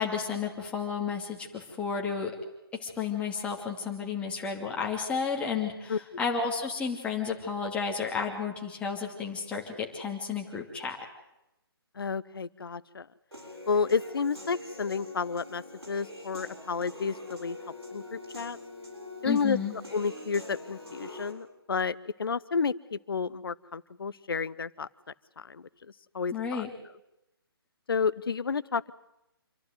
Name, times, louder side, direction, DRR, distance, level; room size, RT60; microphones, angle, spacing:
voice 1, 0.0-2.3 2.8-11.0 19.2-19.7 26.3-26.7, left 6 dB, 10° left, 0 dB, 2.7 m, -32 dB
voice 2, 5.9-6.2 12.0-13.1 13.7-17.6 17.9-18.6 19.2-19.6 19.9-24.9 25.4-25.6 26.1-26.6 27.9-28.9, left 5 dB, 65° left, 19 dB, 0.8 m, -31 dB
Human voice / Piano, 13.3-21.3, left 1 dB, 90° right, 7.1 m, -44 dB
27.0 x 12.0 x 9.5 m, 0.89 s
figure-of-eight pair, 145°, 13 cm